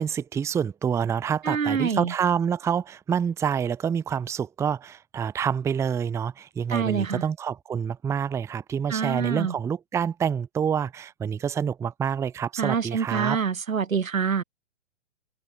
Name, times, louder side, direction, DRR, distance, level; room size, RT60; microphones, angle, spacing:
voice 1, 0.0-13.4, right 7 dB, 5° right, 0.7 m, -27 dB
voice 2, 1.4-2.1 6.7-7.2 8.9-9.5 12.6-14.4, right 6 dB, 85° right, 1.5 m, -26 dB
open air
figure-of-eight pair, 125°, 39 cm